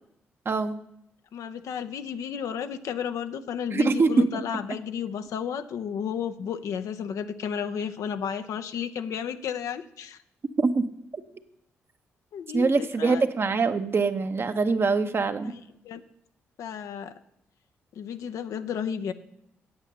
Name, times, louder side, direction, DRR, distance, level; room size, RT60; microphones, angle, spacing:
voice 1, 0.4-0.8 3.7-4.4 10.6-10.9 12.5-15.5, right 4 dB, 45° right, 9 dB, 0.9 m, -24 dB
voice 2, 1.3-10.2 12.3-13.2 15.8-16.0 16.6-17.1 18.0-19.1, left 8 dB, 70° left, 10 dB, 0.7 m, -32 dB
8.9 x 8.2 x 6.7 m, 0.79 s
hypercardioid pair, 45°, 6 cm